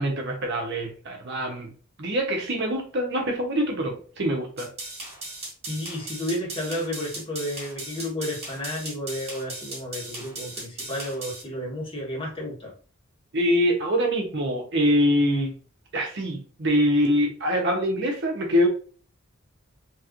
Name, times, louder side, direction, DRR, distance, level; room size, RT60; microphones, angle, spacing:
voice 1, 0.0-1.7 2.0-4.7 13.3-15.5 15.9-18.7, equal, 60° right, 1 dB, 0.8 m, -24 dB
sound 1, 4.6-11.4, right 2 dB, 30° right, 1.3 m, -37 dB
voice 2, 5.7-12.7, left 1 dB, 25° left, -3 dB, 1.1 m, -32 dB
3.0 x 3.0 x 2.5 m, 0.40 s
head